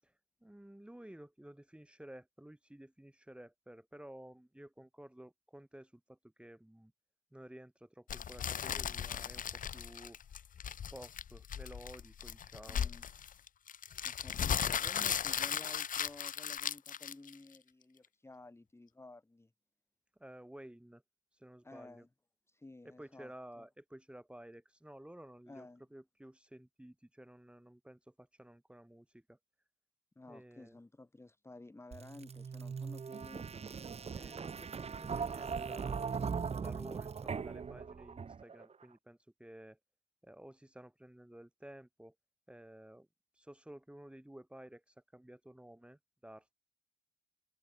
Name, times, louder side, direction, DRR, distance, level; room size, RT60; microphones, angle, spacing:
voice 1, 0.4-6.9 7.3-10.2 10.9-12.9 20.2-21.0 21.3-22.1 22.8-29.4 30.3-30.8 34.1-39.8 40.2-42.2 42.5-43.1 43.3-46.5, right 1 dB, 5° right, 3.7 m, -53 dB
sound 1, 8.1-17.6, left 8 dB, 40° left, 0.7 m, -37 dB
voice 2, 12.7-13.1 14.0-19.5 21.6-22.1 22.5-23.3 23.6-23.7 25.5-25.8 30.2-33.8, left 2 dB, 15° left, 1.8 m, -53 dB
sound 2, 31.9-38.6, right 6 dB, 30° right, 0.9 m, -40 dB
cardioid pair, 90°, 20 cm